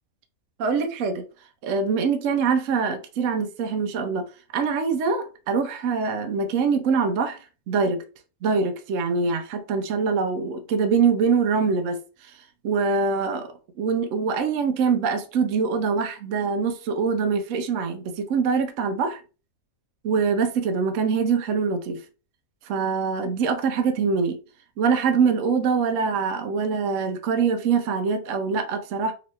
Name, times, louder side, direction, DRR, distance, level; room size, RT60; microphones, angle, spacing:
voice 1, 0.6-1.3 1.6-4.3 4.5-7.4 7.7-8.0 8.4-12.4 12.6-19.2 20.0-22.0 22.6-24.4 24.8-29.1, right 5 dB, 70° right, 0.9 m, -24 dB
3.0 x 2.9 x 3.1 m
omnidirectional pair, 1.5 m